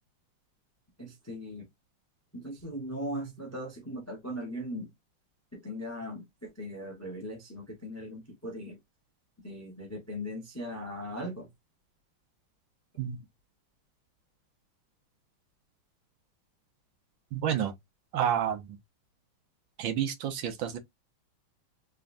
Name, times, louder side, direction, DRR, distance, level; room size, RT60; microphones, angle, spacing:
voice 1, 1.0-1.7 2.3-4.9 5.5-8.8 9.4-11.5, equal, 20° left, 0.4 m, -39 dB
voice 2, 17.3-17.7 18.1-18.6 19.8-20.8, right 9 dB, 70° right, 1.4 m, -29 dB
3.6 x 3.3 x 2.6 m
omnidirectional pair, 2.3 m